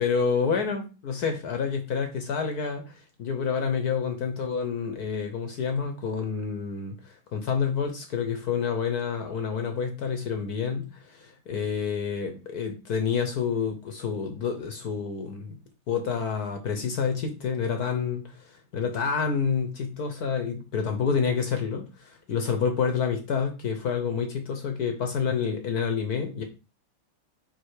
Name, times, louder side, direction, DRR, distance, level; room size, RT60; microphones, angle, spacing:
voice 1, 0.0-15.6 15.9-26.4, left 6 dB, 60° left, 5 dB, 1.1 m, -28 dB
5.2 x 3.8 x 4.8 m, 0.31 s
omnidirectional pair, 2.4 m